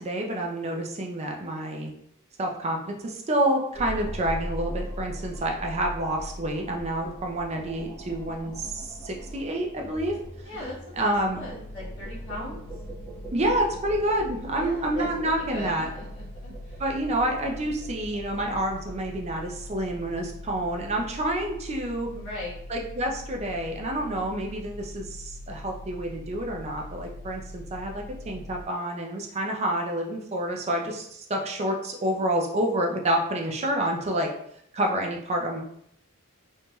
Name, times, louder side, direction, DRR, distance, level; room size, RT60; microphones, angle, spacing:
voice 1, 0.0-1.9 2.4-10.1 11.0-11.4 13.3-15.9 16.8-22.1 22.7-34.3 34.7-35.6, right 1 dB, 30° right, 1 dB, 0.4 m, -28 dB
sound 1, 3.7-21.0, equal, 20° left, 0.8 m, -41 dB
voice 2, 10.4-12.6 14.5-16.8 22.1-22.6, left 2 dB, 60° left, -8 dB, 1.1 m, -39 dB
sound 2, 11.3-28.7, left 1 dB, 90° left, 0.4 m, -42 dB
3.1 x 2.6 x 2.2 m, 0.72 s
head